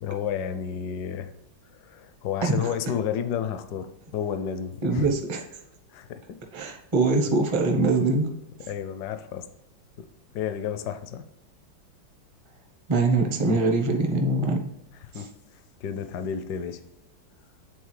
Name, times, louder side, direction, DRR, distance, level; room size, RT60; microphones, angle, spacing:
voice 1, 0.0-1.3 1.7-5.1 5.9-6.4 8.7-9.5 10.0-10.1 10.3-11.2 15.1-15.3 15.8-16.8, left 8 dB, 70° left, 9 dB, 1.1 m, -31 dB
voice 2, 4.8-5.4 6.5-8.3 12.9-14.6 15.1-15.2, right 3 dB, 35° right, 1 dB, 0.4 m, -23 dB
8.1 x 3.9 x 3.2 m, 0.91 s
omnidirectional pair, 2.1 m